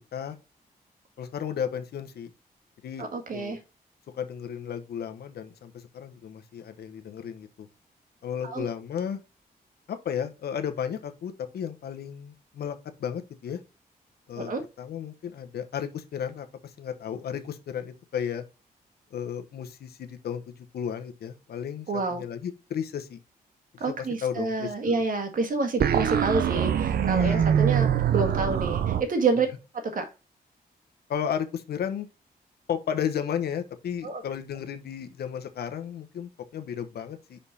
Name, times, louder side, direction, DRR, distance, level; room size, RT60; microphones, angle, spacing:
voice 1, 1.2-2.3 2.8-3.1 3.3-3.6 4.1-7.7 8.2-9.2 9.9-13.6 14.3-14.5 14.8-16.5 16.8-18.4 19.1-23.2 23.7-23.8 24.2-25.0 27.2-27.5 31.1-32.1 32.7-37.4, left 8 dB, 80° left, 1.1 m, -33 dB
voice 2, 3.0-3.6 8.4-8.7 14.4-14.6 21.9-22.2 23.8-29.5 29.9-30.1 34.0-34.2, right 3 dB, 60° right, 1.8 m, -28 dB
sound 1, 25.8-29.0, right 9 dB, 75° right, 0.7 m, -23 dB
5.6 x 5.3 x 4.2 m
cardioid pair, 100°, 16 cm